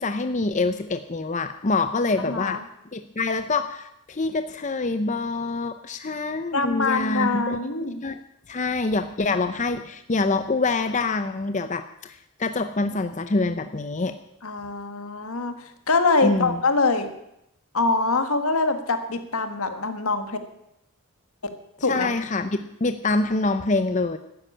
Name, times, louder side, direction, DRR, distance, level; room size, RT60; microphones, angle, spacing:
voice 1, 0.0-2.6 2.9-7.6 8.0-8.2 8.5-14.2 16.2-16.6 21.8-24.2, left 3 dB, 35° left, 9 dB, 0.6 m, -25 dB
voice 2, 2.2-2.6 6.5-8.0 14.4-17.1 17.7-20.4 21.8-22.1, left 3 dB, 80° left, 8 dB, 1.7 m, -24 dB
12.5 x 9.9 x 8.9 m, 0.80 s
head